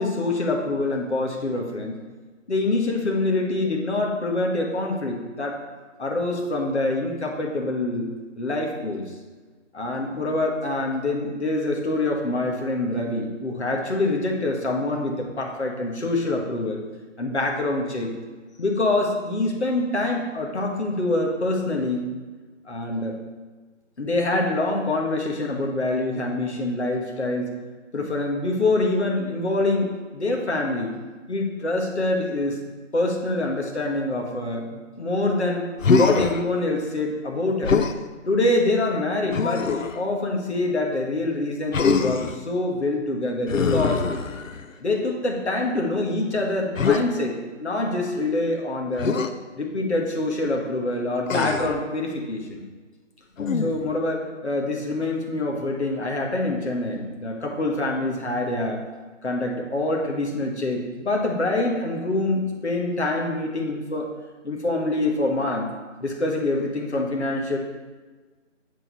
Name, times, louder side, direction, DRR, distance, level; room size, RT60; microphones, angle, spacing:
voice 1, 0.0-2.0 2.5-5.6 6.0-9.0 9.7-16.8 17.2-18.1 18.6-22.0 22.6-23.2 24.0-27.5 27.9-30.9 31.3-32.6 32.9-35.7 35.9-37.8 38.3-44.0 44.8-49.2 49.5-52.6 53.5-58.8 59.2-64.1 64.4-65.7 66.0-67.6, left 2 dB, 60° left, 0 dB, 1.7 m, -25 dB
Human voice, 35.8-36.4 37.6-38.0 39.3-40.0 41.7-42.4 43.5-44.7 46.8-47.0 49.0-49.3 51.3-51.8 53.4-53.9, left 5 dB, 85° left, 0.7 m, -23 dB
7.3 x 6.4 x 4.2 m, 1.3 s
figure-of-eight pair, 175°, 38 cm